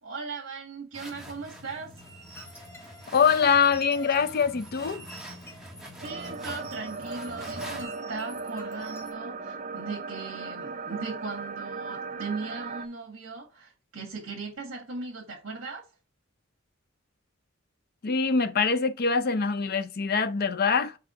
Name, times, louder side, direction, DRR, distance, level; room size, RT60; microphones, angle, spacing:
voice 1, 0.0-1.9 5.6-5.7 6.0-15.8, right 4 dB, 70° right, 1.8 m, -38 dB
sound 1, 0.9-7.8, equal, 5° right, 1.4 m, -45 dB
sound 2, 2.0-9.1, right 1 dB, 15° left, 1.9 m, -49 dB
voice 2, 3.1-5.0 18.0-21.0, left 5 dB, 50° left, 0.6 m, -24 dB
sound 3, 6.0-12.9, right 4 dB, 40° right, 0.5 m, -37 dB
4.8 x 4.8 x 4.4 m
head